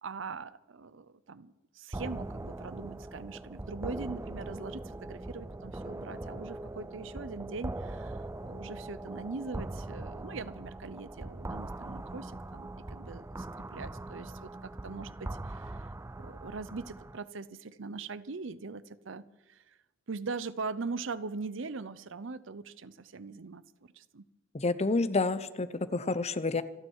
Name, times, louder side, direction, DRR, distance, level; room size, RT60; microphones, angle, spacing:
voice 1, 0.0-15.9 16.2-19.7 20.1-23.6 23.9-24.3, right 4 dB, 70° right, 0.7 m, -41 dB
sound 1, 1.9-17.2, right 2 dB, 15° right, 0.4 m, -41 dB
voice 2, 24.5-26.6, left 3 dB, 35° left, 0.8 m, -29 dB
27.5 x 9.5 x 4.7 m
head